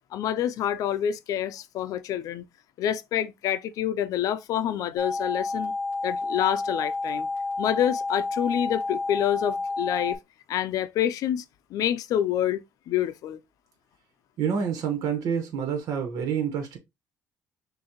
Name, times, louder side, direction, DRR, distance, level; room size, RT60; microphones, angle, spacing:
voice 1, 0.1-2.4 2.8-5.7 6.0-7.3 7.6-10.2 10.5-11.4 11.7-13.4, left 10 dB, 70° left, 0.5 m, -27 dB
sound 1, 5.0-10.1, left 3 dB, 30° right, 2.4 m, -30 dB
voice 2, 14.4-16.8, right 7 dB, 80° right, 1.3 m, -28 dB
6.3 x 2.6 x 3.0 m
cardioid pair, 120°, 6 cm